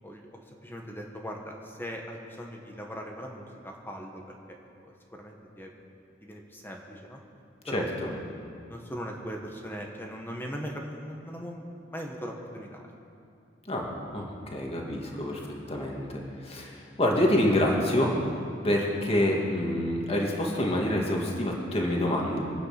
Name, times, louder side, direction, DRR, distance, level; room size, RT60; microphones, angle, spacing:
voice 1, 0.0-4.6 4.8-5.7 6.2-7.2 7.7-7.9 8.3-12.8, equal, 10° left, 1 dB, 1.4 m, -40 dB
voice 2, 7.7-8.1 13.7-15.4 15.7-18.1 18.6-22.4, left 1 dB, 30° left, -1 dB, 2.1 m, -27 dB
24.5 x 9.0 x 6.0 m, 2.5 s
head